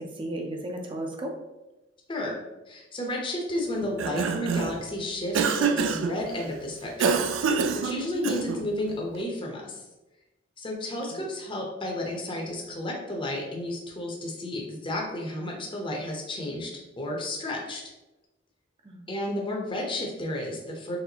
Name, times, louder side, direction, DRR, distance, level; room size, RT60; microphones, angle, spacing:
voice 1, 0.0-1.4 11.1-11.2 18.8-19.4, right 1 dB, 25° right, 2 dB, 0.6 m, -35 dB
voice 2, 2.7-9.8 10.6-16.7 17.0-17.8 19.1-21.0, left 1 dB, 25° left, -1 dB, 0.8 m, -32 dB
Cough, 3.8-4.8 5.3-6.2 7.0-8.7, right 5 dB, 85° right, 0.3 m, -26 dB
4.2 x 3.2 x 2.8 m, 1.0 s
head